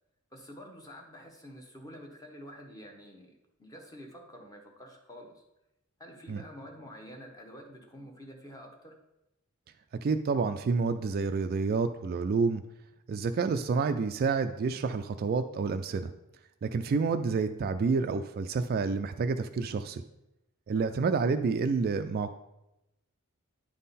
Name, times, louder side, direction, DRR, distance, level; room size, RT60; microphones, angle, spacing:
voice 1, 0.3-5.4 6.0-9.0 16.6-17.0 20.7-21.0, equal, 15° left, 2 dB, 1.0 m, -48 dB
voice 2, 10.0-12.6 13.1-16.1 16.6-20.0 20.7-22.3, right 4 dB, 45° right, 9 dB, 0.3 m, -29 dB
9.8 x 3.7 x 4.1 m, 0.91 s
head